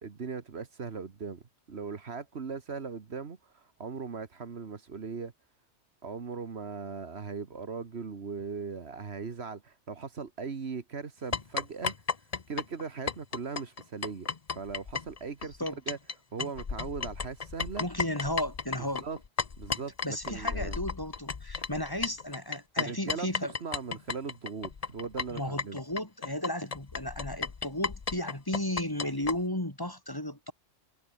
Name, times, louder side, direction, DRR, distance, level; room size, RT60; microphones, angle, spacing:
voice 1, 0.0-1.4 1.7-5.3 6.0-11.9 12.5-15.5 15.9-16.0 16.3-17.9 18.8-19.2 19.6-20.8 22.8-23.3 23.6-25.8, right 5 dB, 65° right, 1.7 m, -39 dB
sound 1, 11.3-16.1 16.4-29.4, left 5 dB, 35° left, 0.9 m, -34 dB
voice 2, 17.8-19.1 20.0-23.5 25.3-30.5, left 1 dB, 20° left, 2.7 m, -34 dB
omnidirectional pair, 1.2 m